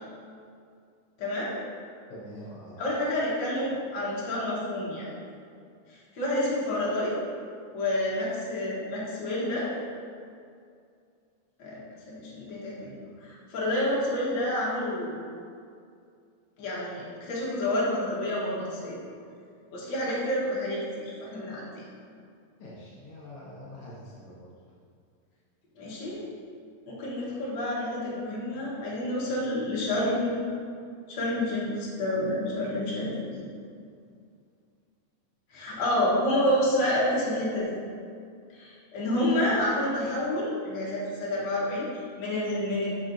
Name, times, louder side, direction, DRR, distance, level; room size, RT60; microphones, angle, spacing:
voice 1, 1.2-1.6 2.8-5.1 5.9-7.2 7.7-9.7 11.6-11.8 12.1-15.2 16.6-19.0 19.7-21.8 25.8-26.2 26.9-30.3 31.1-33.4 35.5-37.7 38.5-42.9, left 1 dB, 90° left, -7 dB, 0.9 m, -29 dB
voice 2, 2.1-2.8 22.6-24.5, left 1 dB, 70° left, -7 dB, 1.4 m, -44 dB
6.2 x 6.2 x 2.6 m, 2.3 s
omnidirectional pair, 4.0 m